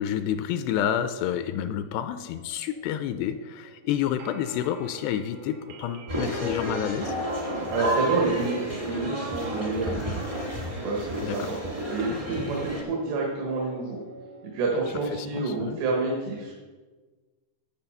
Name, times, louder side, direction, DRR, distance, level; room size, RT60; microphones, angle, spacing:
voice 1, 0.0-7.1 11.2-11.6 12.1-12.2 15.1-15.8, left 10 dB, 85° left, 10 dB, 2.6 m, -29 dB
sound 1, 2.0-14.5, right 5 dB, 75° right, 1.5 m, -46 dB
sound 2, 6.1-12.8, equal, 50° right, 0.4 m, -31 dB
voice 2, 7.7-10.2 10.8-14.0 14.5-16.5, right 3 dB, 90° right, -2 dB, 3.8 m, -28 dB
10.5 x 7.2 x 5.6 m, 1.3 s
omnidirectional pair, 4.8 m